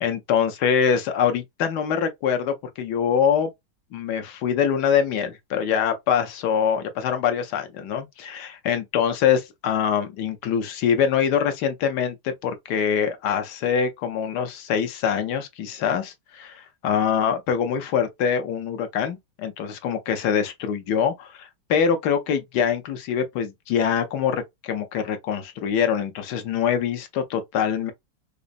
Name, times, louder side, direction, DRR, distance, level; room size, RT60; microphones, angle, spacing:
voice 1, 0.0-3.5 3.9-27.9, left 7 dB, 70° left, 1.1 m, -24 dB
5.1 x 2.0 x 2.5 m
omnidirectional pair, 2.2 m